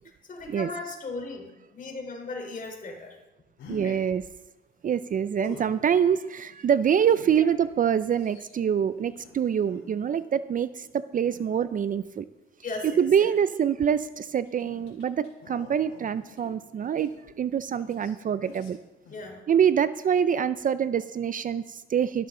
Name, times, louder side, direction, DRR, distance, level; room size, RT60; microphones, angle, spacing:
voice 1, 0.3-3.2 3.8-4.0 7.4-7.5 12.6-13.3 19.1-19.4, left 3 dB, 45° left, 2 dB, 3.8 m, -37 dB
sound 1, 3.6-3.9 5.4-5.8 7.1-10.2 11.2-12.0 12.8-13.1 13.8-17.5 17.8-18.1 18.4-18.8 19.0-19.2, left 3 dB, 70° left, 3.6 m, -48 dB
voice 2, 3.7-4.2 4.8-12.3 12.8-17.1 17.4-18.8 19.5-22.3, right 8 dB, 45° right, 14 dB, 0.5 m, -25 dB
13.5 x 12.5 x 3.8 m, 1.0 s
cardioid pair, 90°, 20 cm